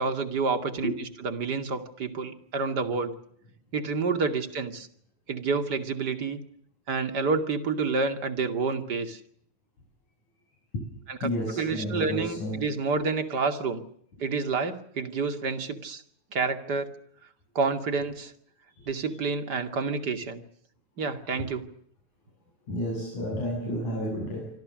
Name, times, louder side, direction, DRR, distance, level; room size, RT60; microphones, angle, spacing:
voice 1, 0.0-3.2 3.7-4.9 5.3-6.4 6.9-9.2 11.1-13.8 14.2-16.0 16.3-16.9 17.5-18.3 18.9-20.4 21.0-21.6, right 4 dB, 35° right, 7 dB, 2.7 m, -29 dB
voice 2, 11.2-12.6 22.7-24.5, equal, 75° left, -3 dB, 9.4 m, -31 dB
27.5 x 25.0 x 6.5 m, 0.67 s
omnidirectional pair, 3.4 m